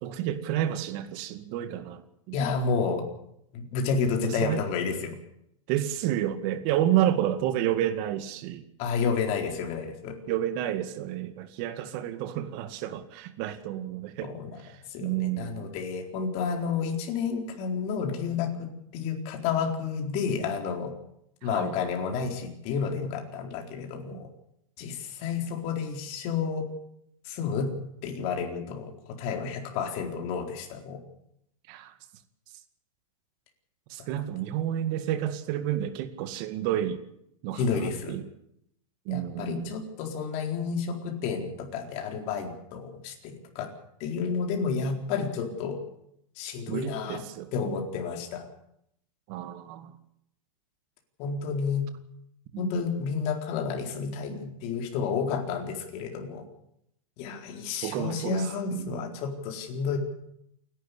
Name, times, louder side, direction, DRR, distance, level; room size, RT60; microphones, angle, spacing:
voice 1, 0.0-2.4 4.2-4.6 5.7-8.6 10.3-14.3 14.6-15.7 21.5-21.8 24.1-24.2 31.7-31.9 33.9-37.0 37.4-38.2 39.1-39.7 46.7-47.7 49.3-49.9 52.5-52.8 57.8-59.1, right 12 dB, 40° right, 10 dB, 2.1 m, -30 dB
voice 2, 2.3-3.0 3.5-5.2 8.8-10.2 14.2-14.5 14.9-18.7 18.9-20.9 21.4-24.3 24.8-26.7 27.2-27.7 28.0-31.0 37.6-38.2 39.1-43.7 44.0-45.8 46.4-47.2 47.5-48.5 51.2-51.9 52.6-56.4 57.2-60.0, left 5 dB, 40° left, 3 dB, 4.2 m, -30 dB
28.5 x 11.5 x 8.4 m, 0.75 s
supercardioid pair, 155°, 17 cm